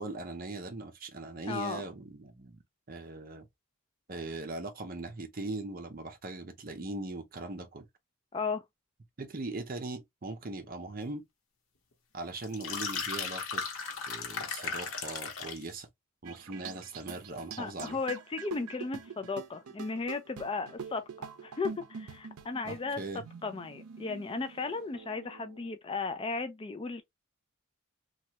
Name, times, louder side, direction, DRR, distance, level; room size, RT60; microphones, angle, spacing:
voice 1, 0.0-2.6 2.9-3.5 4.1-7.9 9.2-11.2 12.1-13.6 14.1-15.9 16.2-18.0 22.6-23.2, right 2 dB, 40° right, 0.6 m, -40 dB
voice 2, 1.4-1.8 8.3-8.6 17.6-23.0 23.4-27.0, left 4 dB, 25° left, 0.3 m, -35 dB
sound 1, 12.4-15.7, left 5 dB, 65° left, 0.9 m, -36 dB
sound 2, 16.2-25.7, right 6 dB, 85° right, 0.5 m, -45 dB
3.1 x 2.3 x 2.8 m
head